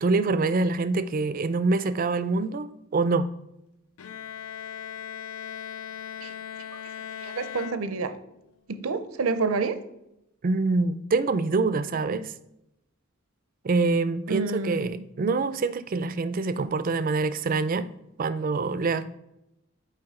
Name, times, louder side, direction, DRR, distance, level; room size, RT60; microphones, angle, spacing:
voice 1, 0.0-3.3 10.4-12.3 13.6-17.9 18.2-19.1, right 3 dB, 40° right, 13 dB, 0.4 m, -25 dB
Bowed string instrument, 4.0-8.4, left 8 dB, 80° left, 0.4 m, -39 dB
voice 2, 7.2-8.1 8.7-9.8 14.3-14.9, right 4 dB, 85° right, 11 dB, 0.6 m, -28 dB
7.7 x 4.7 x 3.6 m, 0.85 s
head